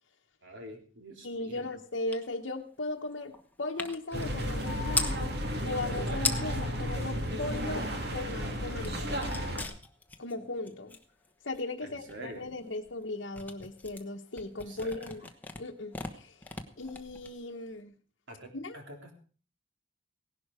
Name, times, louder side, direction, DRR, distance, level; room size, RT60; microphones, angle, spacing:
voice 1, 0.4-1.6 11.8-12.5 14.7-15.0 18.3-19.1, right 1 dB, 85° right, 2 dB, 3.8 m, -46 dB
voice 2, 1.2-3.3 3.6-5.4 5.6-7.8 8.1-9.4 10.2-11.0 11.4-15.3 15.6-16.5 16.8-18.0 18.5-18.8, left 2 dB, 70° left, 0 dB, 1.0 m, -37 dB
sound 1, 2.1-2.3 2.6-5.2 5.9-6.0 6.2-6.7 7.1-8.2 8.5-17.8, left 3 dB, 10° left, 1.2 m, -39 dB
sound 2, 4.1-9.6, equal, 60° right, 2.6 m, -33 dB
17.5 x 11.5 x 4.9 m, 0.39 s
head